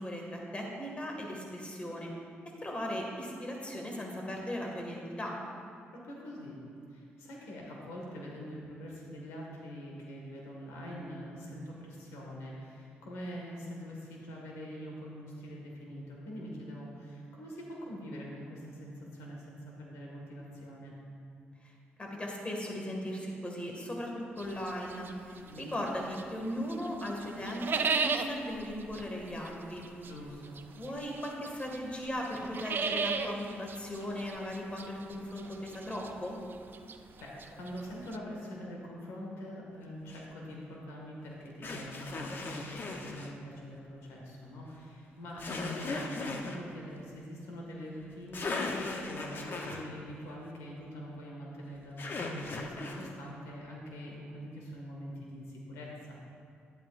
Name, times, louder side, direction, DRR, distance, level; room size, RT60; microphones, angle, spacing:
voice 1, 0.0-2.1 2.6-5.4 21.6-21.7 22.0-29.9 30.8-36.4, equal, 25° left, 0 dB, 2.0 m, -38 dB
voice 2, 5.9-6.6 6.9-21.0 25.4-25.6 30.0-30.6 37.2-56.2, equal, 90° left, -2 dB, 1.8 m, -44 dB
sound 1, 24.4-26.4 26.7-38.2, right 5 dB, 50° right, 0.5 m, -36 dB
sound 2, 40.1-40.3 41.6-43.3 45.4-46.6 48.0-48.1 48.3-49.9 52.0-53.1, left 3 dB, 50° left, 1.0 m, -37 dB
11.5 x 11.0 x 2.6 m, 2.4 s
cardioid pair, 70°, 5 cm